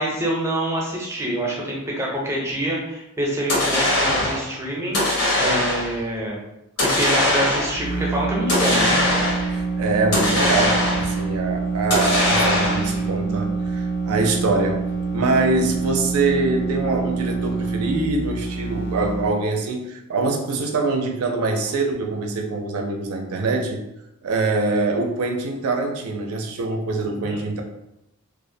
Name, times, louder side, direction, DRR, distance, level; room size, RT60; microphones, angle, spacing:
voice 1, 0.0-5.0 5.4-6.4 7.0-9.0 27.1-27.4, right 1 dB, 10° right, -3 dB, 0.5 m, -26 dB
sound 1, 3.5-4.5 4.9-6.0 6.8-7.8 8.5-9.6 10.1-11.2 11.9-13.0, left 1 dB, 85° left, 0.9 m, -21 dB
sound 2, 7.6-19.3, right 4 dB, 45° left, 0.4 m, -26 dB
voice 2, 9.5-23.8 24.2-27.6, right 3 dB, 75° right, 3 dB, 0.4 m, -24 dB
2.4 x 2.0 x 2.6 m, 0.87 s
head